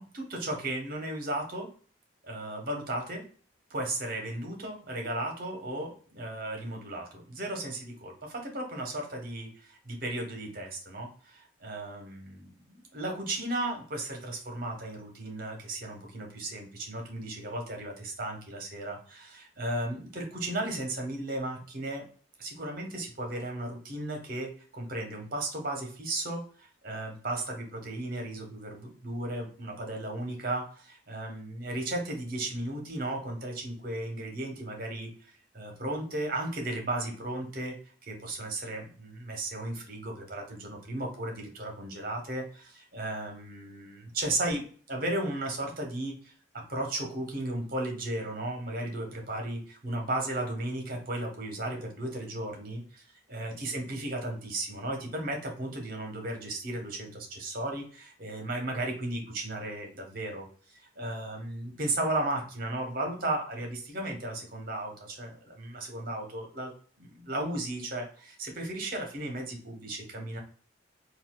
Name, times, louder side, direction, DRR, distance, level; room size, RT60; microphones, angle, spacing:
voice 1, 0.0-1.7 2.2-3.2 3.7-22.0 22.4-35.1 35.5-37.8 38.0-53.0 53.3-60.5 60.8-66.7 67.0-70.4, right 1 dB, 50° right, 2 dB, 1.0 m, -35 dB
3.9 x 2.4 x 2.3 m, 0.43 s
head